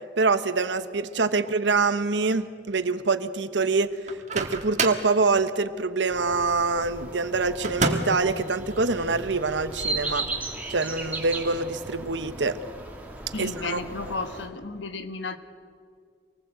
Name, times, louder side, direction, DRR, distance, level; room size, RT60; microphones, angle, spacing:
voice 1, 0.2-3.9 4.3-10.2 10.7-12.6 13.4-13.8, right 3 dB, 75° right, 1.1 m, -25 dB
Microwave oven, 4.1-5.1 7.6-8.3, right 3 dB, 40° right, 1.9 m, -27 dB
sound 1, 6.1-14.5, right 3 dB, 10° right, 2.6 m, -36 dB
voice 2, 13.3-15.4, left 3 dB, 80° left, 1.4 m, -33 dB
26.5 x 19.5 x 8.0 m
head